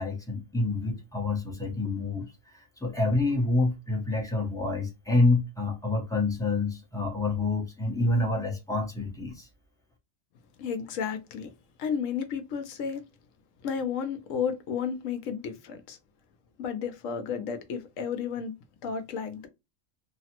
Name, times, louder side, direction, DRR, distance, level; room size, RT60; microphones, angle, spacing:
voice 1, 0.0-2.2 2.5-9.5, left 2 dB, 5° left, 0.5 m, -27 dB
voice 2, 10.6-11.5 11.8-13.0 13.6-16.0 16.6-18.5 18.8-19.5, left 7 dB, 75° left, 1.0 m, -32 dB
3.2 x 2.0 x 2.8 m
omnidirectional pair, 1.4 m